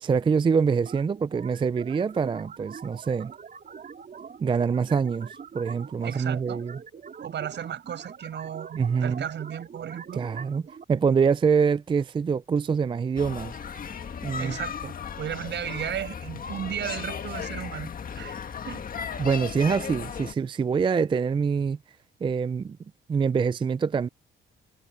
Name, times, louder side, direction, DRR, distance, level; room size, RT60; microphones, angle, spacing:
voice 1, 0.0-3.3 4.4-6.8 8.7-9.3 10.1-10.6 10.9-13.6 14.2-14.5 19.2-21.8 22.2-22.8 23.1-24.1, right 6 dB, 25° right, 0.4 m, -25 dB
sound 1, 0.9-10.8, right 6 dB, 45° right, 4.1 m, -44 dB
voice 2, 6.0-6.6 7.2-10.2 14.3-17.9 18.2-18.4 18.6-18.9, right 9 dB, 65° right, 6.2 m, -35 dB
sound 2, 13.2-20.3, left 7 dB, 45° left, 1.6 m, -36 dB
cardioid pair, 90°, 20 cm